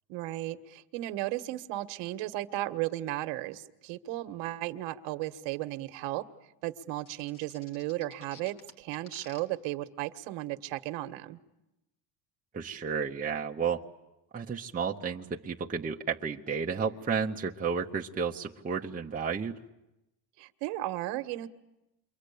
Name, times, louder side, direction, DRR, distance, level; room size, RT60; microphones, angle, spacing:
voice 1, 0.1-6.2 6.6-11.4 20.4-21.5, right 16 dB, 75° right, 9 dB, 1.5 m, -35 dB
sound 1, 7.1-9.4, left 5 dB, 45° left, 3.7 m, -52 dB
voice 2, 12.5-13.8 14.3-19.6, right 6 dB, 20° right, 0 dB, 1.1 m, -32 dB
28.0 x 24.0 x 8.5 m, 0.93 s
cardioid pair, 125°, 44 cm